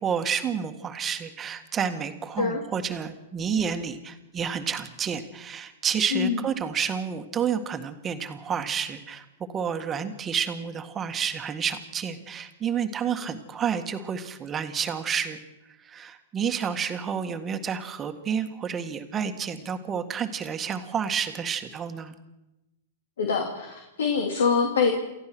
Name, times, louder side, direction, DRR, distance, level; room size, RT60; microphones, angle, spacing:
voice 1, 0.0-15.4 15.8-22.1, right 7 dB, 25° right, 7 dB, 1.8 m, -30 dB
voice 2, 6.1-6.4 13.2-13.3 23.2-25.0, left 5 dB, 80° left, 3 dB, 2.9 m, -24 dB
28.5 x 14.5 x 6.2 m, 0.99 s
hypercardioid pair, 125°, 0 cm